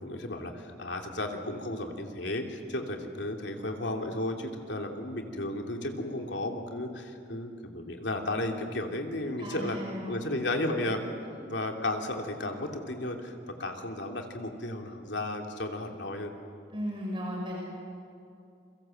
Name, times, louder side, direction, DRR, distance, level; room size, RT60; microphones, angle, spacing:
voice 1, 0.0-9.8 10.1-11.0 11.5-16.3, left 1 dB, 80° left, 3 dB, 3.0 m, -34 dB
voice 2, 9.4-10.3 10.7-10.8 16.7-17.6, equal, 25° right, -2 dB, 5.6 m, -36 dB
29.0 x 23.5 x 7.9 m, 2.6 s
head